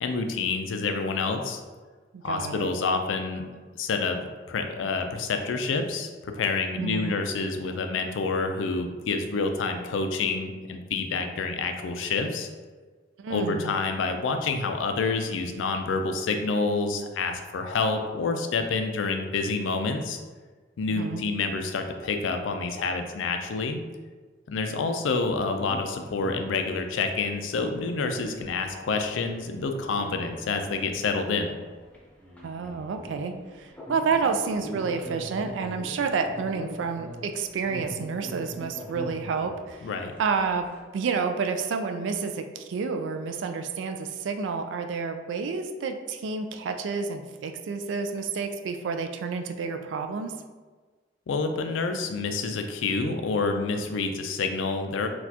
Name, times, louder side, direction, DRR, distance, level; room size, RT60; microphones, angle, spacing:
voice 1, 0.0-1.6 2.2-3.4 3.8-4.2 4.5-12.5 13.3-20.2 20.8-23.8 24.5-31.5 39.8-40.1 51.3-55.1, left 4 dB, 85° left, 6 dB, 0.4 m, -28 dB
voice 2, 2.1-2.7 6.8-7.2 13.2-13.8 20.9-21.2 32.4-39.9 40.2-40.7 40.9-50.3, right 5 dB, 75° right, 7 dB, 0.3 m, -29 dB
sound 1, 25.5-40.8, equal, 10° left, 0.4 m, -43 dB
4.1 x 2.3 x 2.8 m, 1.4 s
head